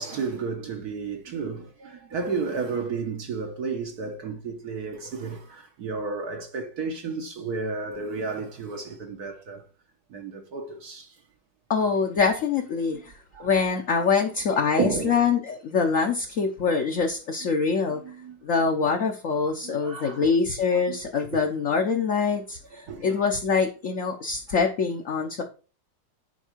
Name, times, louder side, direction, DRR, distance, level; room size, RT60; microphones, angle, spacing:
voice 1, 0.0-9.6 10.1-11.1 12.9-13.0 13.3-13.5 14.8-15.3 17.9-18.4 19.6-20.3 20.7-21.0 22.7-23.2, right 4 dB, 60° right, 1.6 m, -32 dB
voice 2, 11.7-13.1 13.4-18.0 18.4-22.6 23.0-25.4, left 5 dB, 50° left, 1.2 m, -24 dB
10.0 x 4.6 x 4.6 m
omnidirectional pair, 2.0 m